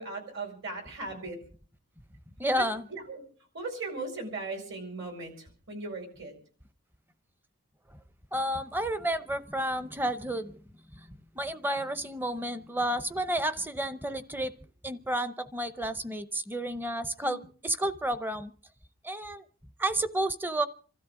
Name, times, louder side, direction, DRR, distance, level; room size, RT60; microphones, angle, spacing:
voice 1, 0.0-1.4 2.6-3.2 3.5-6.4 17.2-17.4, right 3 dB, 60° right, 4 dB, 5.3 m, -38 dB
voice 2, 2.4-2.8 8.3-10.6 10.9-11.0 11.4-14.5 14.8-18.5 19.0-19.4 19.8-20.7, right 1 dB, 10° right, 13 dB, 0.7 m, -31 dB
26.5 x 13.0 x 3.7 m, 0.43 s
head